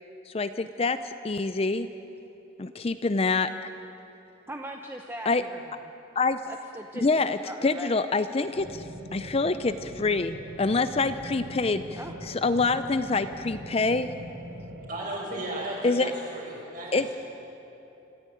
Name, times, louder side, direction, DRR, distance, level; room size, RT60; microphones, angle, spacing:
voice 1, 0.3-1.9 2.6-3.5 5.3-5.4 6.2-6.4 7.0-8.9 9.1-12.0 12.3-14.1 15.8-16.1 16.9-17.1, left 3 dB, 30° left, 11 dB, 0.5 m, -26 dB
voice 2, 4.5-5.8 6.5-8.0 12.0-12.2, right 1 dB, 10° right, 2 dB, 0.9 m, -40 dB
sound 1, 8.5-14.9, equal, 65° right, 1.8 m, -42 dB
voice 3, 14.9-17.2, right 1 dB, 40° right, -4 dB, 6.7 m, -35 dB
26.0 x 14.0 x 9.2 m, 3.0 s
head